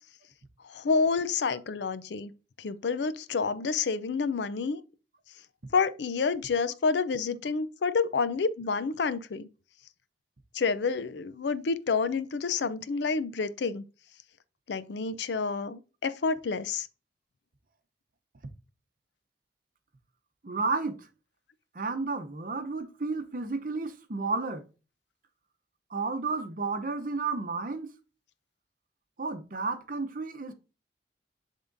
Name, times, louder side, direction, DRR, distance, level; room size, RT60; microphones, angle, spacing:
voice 1, 0.7-2.3 2.6-4.8 5.7-9.5 10.5-13.8 14.7-16.9, left 4 dB, 75° left, 0.5 m, -29 dB
voice 2, 20.4-21.0 21.7-24.6 25.9-27.9 29.2-30.5, right 3 dB, 50° right, 0.7 m, -32 dB
10.5 x 3.6 x 2.6 m
head